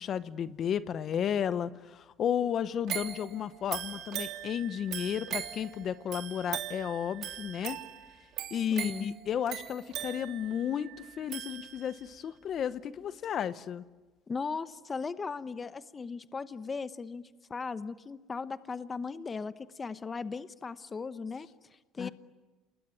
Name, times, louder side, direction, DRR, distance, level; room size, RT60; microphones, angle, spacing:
voice 1, 0.0-7.8 8.5-13.8 22.0-22.1, left 9 dB, 50° left, 14 dB, 1.0 m, -33 dB
sound 1, 2.9-12.1 12.6-12.7, right 11 dB, 60° right, 3.1 m, -40 dB
voice 2, 8.7-9.1 14.3-17.2 17.5-22.1, left 4 dB, 25° left, 13 dB, 1.0 m, -37 dB
28.5 x 20.5 x 9.4 m, 1.2 s
supercardioid pair, 95°, 0 cm